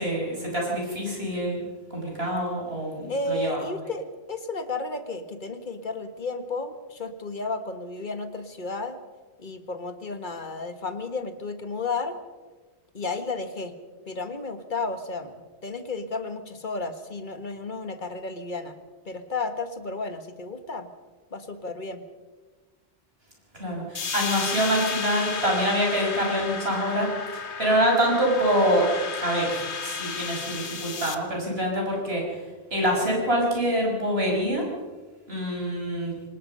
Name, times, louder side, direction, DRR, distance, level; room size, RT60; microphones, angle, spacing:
voice 1, 0.0-1.6 1.9-3.6 23.6-28.9 29.2-32.4 32.7-34.6 35.3-36.1, equal, 65° right, -1 dB, 6.5 m, -25 dB
voice 2, 3.1-9.0 9.4-12.2 12.9-13.7 14.1-18.8 19.1-20.9 21.3-22.0, left 3 dB, 45° left, 9 dB, 1.7 m, -33 dB
sound 1, 23.9-31.1, left 5 dB, 90° left, 1.6 m, -33 dB
25.0 x 19.5 x 5.5 m, 1.3 s
omnidirectional pair, 1.1 m